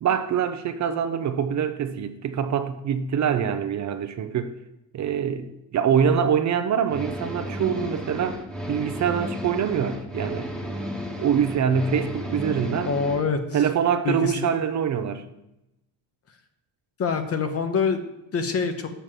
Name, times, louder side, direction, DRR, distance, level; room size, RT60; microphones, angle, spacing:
voice 1, 0.0-4.5 4.9-8.4 8.7-10.5 11.2-12.9 13.5-15.2, right 8 dB, 45° right, 0.7 m, -24 dB
sound 1, 6.9-13.2, equal, ahead, 1.2 m, -33 dB
voice 2, 12.8-13.7 14.0-14.3 17.0-18.0 18.3-18.9, left 5 dB, 35° left, 1.0 m, -25 dB
6.9 x 6.3 x 7.4 m
cardioid pair, 145°, 41 cm